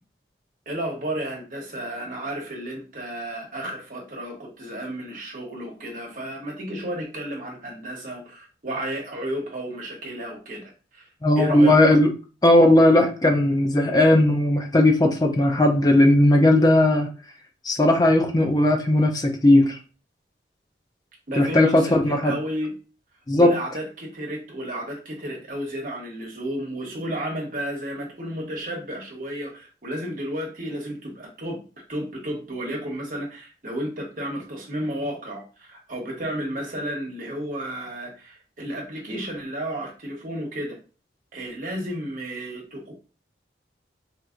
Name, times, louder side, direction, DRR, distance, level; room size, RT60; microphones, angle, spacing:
voice 1, 0.7-11.1 11.4-11.8 21.3-22.7 23.3-31.6 31.9-40.8 41.3-42.9, right 1 dB, 50° right, 0 dB, 1.1 m, -32 dB
voice 2, 11.2-12.1 12.4-17.1 17.6-19.8 21.4-22.3 23.3-23.6, left 1 dB, 20° left, 4 dB, 0.4 m, -17 dB
4.2 x 2.7 x 2.4 m, 0.34 s
head